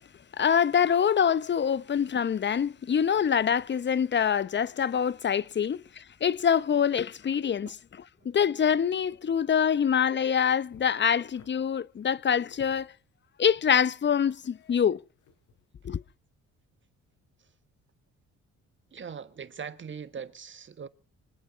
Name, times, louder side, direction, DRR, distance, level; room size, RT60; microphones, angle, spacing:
voice 1, 0.4-7.8 8.2-12.9 13.4-15.0 15.8-16.0, left 8 dB, 35° left, 0.8 m, -25 dB
sound 1, 10.7-11.5 12.0-12.9 13.4-14.9 15.2-15.5, left 6 dB, 80° left, 6.0 m, -57 dB
voice 2, 18.9-20.9, right 7 dB, 40° right, 1.6 m, -40 dB
25.0 x 8.9 x 6.2 m
cardioid pair, 90°, 30 cm